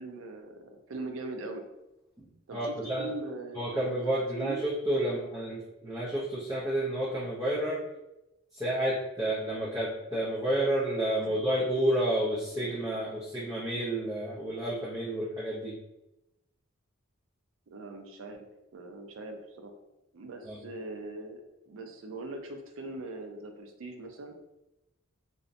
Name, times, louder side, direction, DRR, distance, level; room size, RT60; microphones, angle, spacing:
voice 1, 0.0-1.6 2.5-4.6 11.2-11.4 17.7-18.5 18.7-19.7 20.1-24.4, right 2 dB, 70° right, 5 dB, 0.4 m, -41 dB
voice 2, 2.2-3.1 3.5-7.8 8.5-15.7 20.5-20.6, right 1 dB, 15° right, -8 dB, 0.5 m, -30 dB
2.6 x 2.1 x 2.5 m, 0.94 s
head